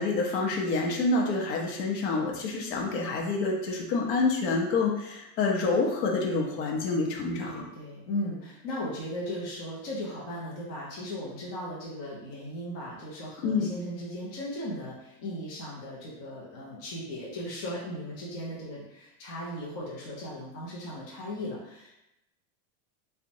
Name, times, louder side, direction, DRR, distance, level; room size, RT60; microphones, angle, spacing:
voice 1, 0.0-7.7 13.4-13.7, left 3 dB, 75° left, 0 dB, 0.7 m, -27 dB
voice 2, 7.4-21.9, left 1 dB, 35° left, -6 dB, 0.5 m, -37 dB
2.8 x 2.1 x 2.5 m, 0.87 s
supercardioid pair, 175°, 50 cm